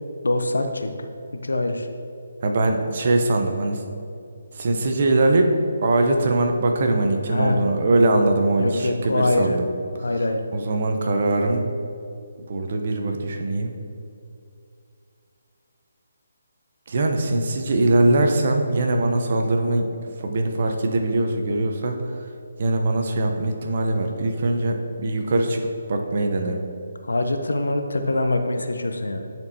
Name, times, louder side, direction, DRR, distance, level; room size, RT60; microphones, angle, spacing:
voice 1, 0.2-0.9 1.4-1.9 7.3-7.6 8.6-9.6 10.0-10.5 27.0-29.3, left 2 dB, 80° left, 6 dB, 0.6 m, -24 dB
voice 2, 2.4-3.8 4.5-5.5 5.8-9.6 10.5-11.7 12.5-13.7 16.9-19.9 20.2-21.9 22.6-26.6, right 2 dB, 50° right, 3 dB, 0.7 m, -21 dB
10.5 x 4.4 x 2.7 m, 2.5 s
figure-of-eight pair, 150°, 0 cm